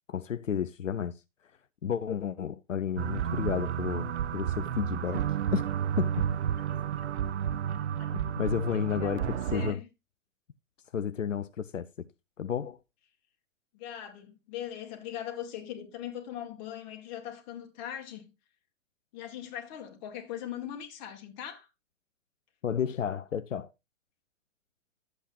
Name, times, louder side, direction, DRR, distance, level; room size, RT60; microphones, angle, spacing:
voice 1, 0.1-1.1 1.8-5.2 5.5-5.7 6.0-6.2 8.1-9.2 9.5-9.8 10.9-12.1 12.4-12.8 22.6-23.7, left 8 dB, 80° left, 0.6 m, -32 dB
sound 1, 3.0-9.7, right 9 dB, 60° right, 0.5 m, -31 dB
voice 2, 8.6-9.9 13.7-18.3 19.1-21.7, left 10 dB, 35° left, 2.1 m, -40 dB
12.0 x 8.1 x 2.8 m
figure-of-eight pair, 120°, 38 cm